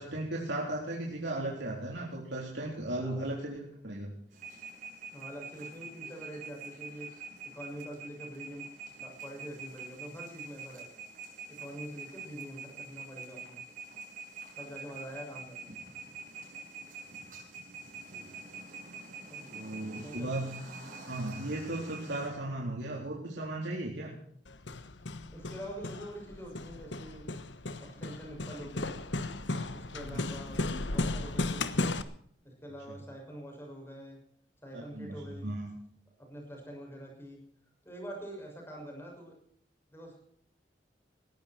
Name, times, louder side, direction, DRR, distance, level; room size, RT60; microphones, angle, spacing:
voice 1, 0.0-3.6 3.8-4.1 18.1-18.3 19.5-20.6 21.1-24.1 29.9-30.2 32.9-33.0 34.7-35.7, right 1 dB, 75° right, -3 dB, 3.9 m, -36 dB
voice 2, 3.0-3.3 5.1-7.1 7.5-8.6 9.0-10.9 11.5-13.6 14.5-15.9 19.3-19.5 20.0-20.3 25.3-27.3 27.8-29.0 29.7-31.9 32.4-34.2 34.6-35.5 36.3-37.4 37.8-39.4 39.9-40.3, equal, 15° left, 0 dB, 6.3 m, -45 dB
sound 1, 4.3-22.3, right 4 dB, 45° right, 7.3 m, -46 dB
Hammer, 24.5-32.0, left 2 dB, 85° left, 1.2 m, -35 dB
20.0 x 15.0 x 4.5 m, 0.62 s
head